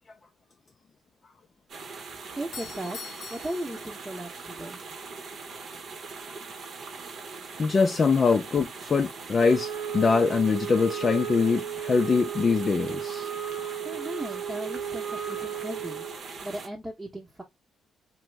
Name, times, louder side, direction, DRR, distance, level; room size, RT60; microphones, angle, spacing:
sound 1, 1.7-16.7, right 4 dB, 55° right, 0.7 m, -41 dB
Doorbell, 2.3-4.5, left 6 dB, 80° left, 0.7 m, -44 dB
voice 1, 2.3-3.0 3.3-4.8 13.8-16.0 16.4-17.4, right 1 dB, 15° right, 0.9 m, -36 dB
voice 2, 7.6-13.3, left 4 dB, 40° left, 0.4 m, -23 dB
Wind instrument woodwind instrument, 9.4-16.2, right 9 dB, 90° right, 0.9 m, -34 dB
3.0 x 2.0 x 3.3 m
cardioid pair, 90°, 0 cm